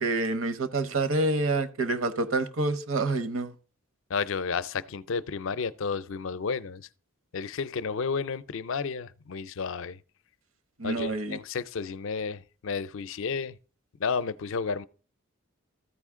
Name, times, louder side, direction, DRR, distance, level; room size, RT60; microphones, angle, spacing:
voice 1, 0.0-3.5 10.8-11.4, right 2 dB, 70° right, 0.9 m, -27 dB
voice 2, 4.1-6.9 7.3-10.0 10.8-13.6 14.0-14.9, left 5 dB, 65° left, 0.5 m, -32 dB
14.0 x 5.0 x 3.6 m
head